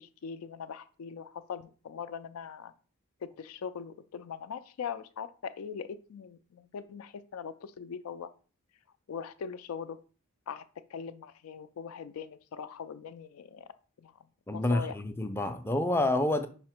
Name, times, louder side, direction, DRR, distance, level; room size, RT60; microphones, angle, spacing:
voice 1, 0.0-2.7 3.2-8.3 9.1-10.0 10.5-10.6 10.9-13.7 14.0-14.1 14.5-15.0, left 6 dB, 85° left, 0.4 m, -41 dB
voice 2, 14.5-16.5, left 1 dB, 10° left, 0.4 m, -28 dB
5.6 x 2.0 x 4.3 m
head